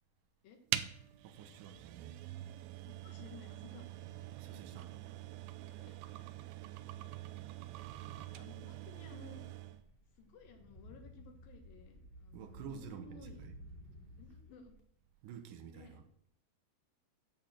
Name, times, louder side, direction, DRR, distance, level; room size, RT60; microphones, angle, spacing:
sound 1, 0.7-9.8, right 14 dB, 90° right, 2.5 m, -44 dB
voice 1, 1.2-2.2 4.3-4.9 12.3-13.5 15.2-16.0, right 7 dB, 70° right, 2.4 m, -50 dB
voice 2, 2.9-4.1 4.4-4.9 5.7-6.0 7.9-9.4 10.2-13.5 14.2-14.8 15.7-16.0, left 4 dB, 75° left, 2.9 m, -56 dB
sound 2, 9.4-14.8, equal, 20° left, 2.2 m, -55 dB
8.7 x 7.3 x 7.5 m
omnidirectional pair, 4.2 m